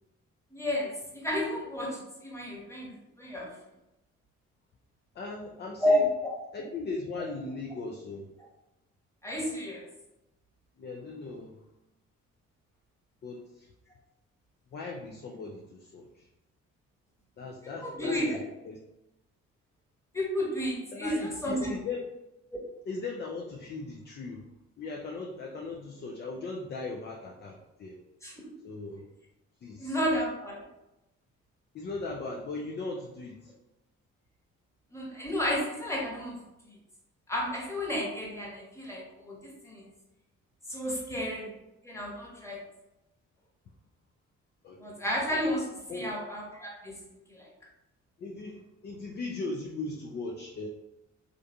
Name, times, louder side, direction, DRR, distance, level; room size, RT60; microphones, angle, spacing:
voice 1, 0.5-3.5 5.8-6.6 9.2-9.8 17.8-18.4 20.1-21.8 28.2-28.3 29.8-30.6 34.9-36.3 36.7-36.8 37.3-39.9 40.7-41.5 41.8-42.6 44.8-45.7 45.9-47.0 47.3-47.5, left 1 dB, 5° left, -3 dB, 1.2 m, -31 dB
voice 2, 5.1-6.1 6.5-8.3 10.8-11.6 13.2-13.7 14.7-16.3 17.4-18.8 20.9-22.1 22.9-24.5 24.8-28.0 28.6-29.1 29.6-30.0 31.7-33.5 44.6-45.0 45.9-46.1 48.2-50.7, left 3 dB, 30° left, 0 dB, 0.4 m, -38 dB
3.4 x 2.5 x 2.2 m, 0.92 s
figure-of-eight pair, 40°, 38 cm